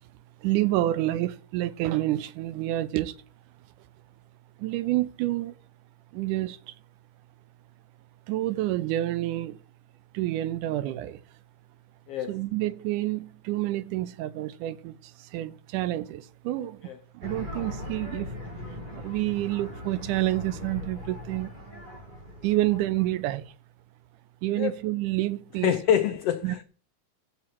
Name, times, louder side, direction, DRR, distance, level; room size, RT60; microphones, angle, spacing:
voice 1, 0.4-3.1 4.6-5.5 6.1-6.6 8.3-9.6 10.1-11.2 12.3-14.9 15.3-16.8 17.2-18.4 19.0-21.5 22.4-23.5 24.4-25.7 26.4-26.6, right 16 dB, 85° right, 2.2 m, -28 dB
sound 1, 17.2-23.5, left 1 dB, 15° right, 3.3 m, -40 dB
voice 2, 25.6-26.6, left 9 dB, 90° left, 1.3 m, -25 dB
11.5 x 7.8 x 4.4 m
omnidirectional pair, 3.6 m